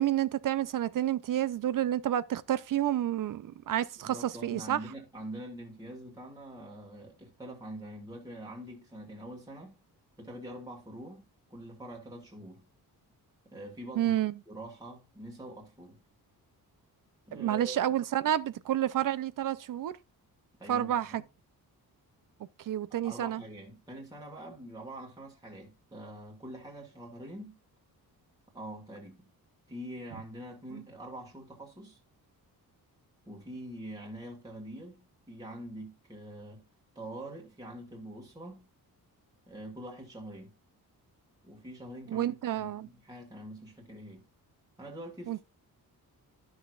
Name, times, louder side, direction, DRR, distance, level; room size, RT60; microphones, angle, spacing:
voice 1, 0.0-4.8 14.0-14.3 17.3-20.0 20.7-21.2 22.6-23.4 30.7-30.8 42.1-42.9 45.3-45.4, right 11 dB, 55° right, 0.6 m, -30 dB
voice 2, 4.0-9.8 10.2-12.6 13.5-14.1 14.5-16.0 17.3-18.0 20.6-21.2 23.0-27.6 28.5-29.3 29.7-32.0 33.3-36.6 37.0-38.6 39.5-40.5 41.4-44.2 44.8-45.4, right 1 dB, 10° right, 1.9 m, -44 dB
12.5 x 6.4 x 2.4 m
wide cardioid pair, 170°, 38 cm